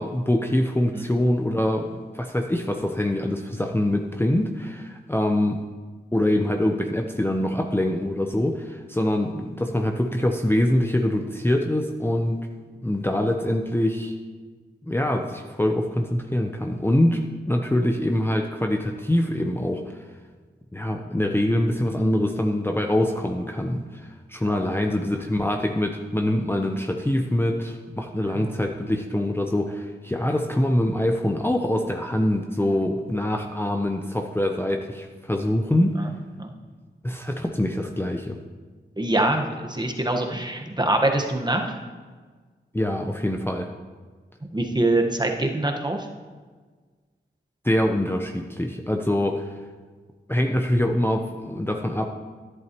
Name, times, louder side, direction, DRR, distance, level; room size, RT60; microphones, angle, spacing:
voice 1, 0.0-5.6 6.1-12.5 12.8-14.1 14.9-20.0 20.7-36.1 37.0-38.4 42.7-43.7 47.6-49.5 50.3-52.1, left 1 dB, 10° left, 3 dB, 0.8 m, -24 dB
voice 2, 39.0-41.8 44.5-46.1, right 2 dB, 20° right, 3 dB, 1.3 m, -24 dB
11.0 x 10.5 x 3.0 m, 1.5 s
cardioid pair, 40°, 20 cm